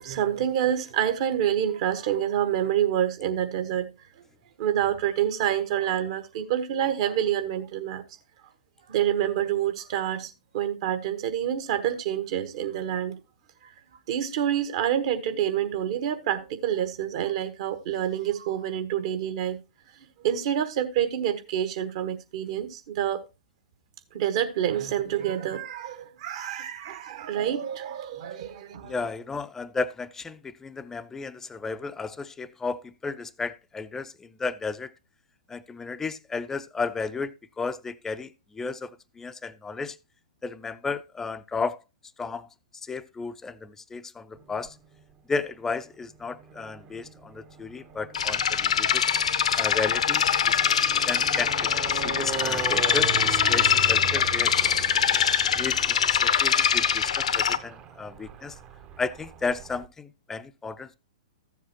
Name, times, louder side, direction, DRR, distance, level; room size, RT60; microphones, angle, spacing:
voice 1, 0.0-3.9 4.6-8.0 8.9-13.2 13.6-13.7 14.1-19.6 20.2-23.2 24.1-28.9, right 10 dB, 50° right, 1.3 m, -27 dB
voice 2, 28.9-34.9 35.5-40.0 40.4-41.8 42.2-42.5 42.8-44.8 45.3-49.0 49.6-50.8 51.1-54.5 55.6-58.6 59.0-60.9, left 4 dB, 10° left, 0.5 m, -33 dB
sound 1, 44.3-45.1 45.9-59.9, right 8 dB, 30° right, 0.8 m, -39 dB
sound 2, 48.1-57.6, left 8 dB, 65° left, 0.7 m, -23 dB
14.0 x 7.4 x 2.9 m
figure-of-eight pair, 110°, 4 cm